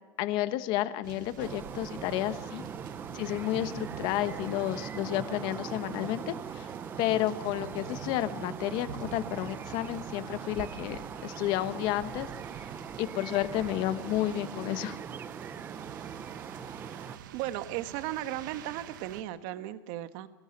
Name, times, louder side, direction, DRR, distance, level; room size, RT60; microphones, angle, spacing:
voice 1, 0.2-2.6 3.1-6.7 7.0-12.3 13.0-15.0, left 14 dB, 45° left, 12 dB, 1.2 m, -31 dB
sound 1, 1.0-19.2, right 9 dB, 85° right, 1.5 m, -47 dB
sound 2, 1.4-17.2, right 7 dB, 20° right, 0.7 m, -41 dB
voice 2, 17.3-20.3, right 14 dB, 50° right, 11 dB, 1.4 m, -36 dB
22.0 x 19.5 x 6.8 m, 1.2 s
supercardioid pair, 150°, 10 cm